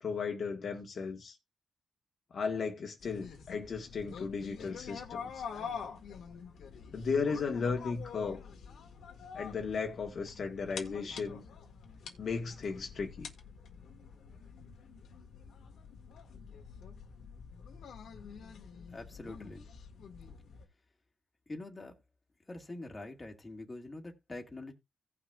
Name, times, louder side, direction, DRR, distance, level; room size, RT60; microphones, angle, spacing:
voice 1, 0.0-1.3 2.3-5.4 6.9-8.4 9.3-11.4 12.2-13.3, left 5 dB, 55° left, 1.4 m, -35 dB
sound 1, 3.0-20.6, left 6 dB, 90° left, 1.7 m, -47 dB
voice 2, 18.9-19.7 21.5-21.9 22.5-24.7, left 2 dB, 20° left, 1.9 m, -44 dB
17.0 x 5.9 x 2.4 m
wide cardioid pair, 125°, 0 cm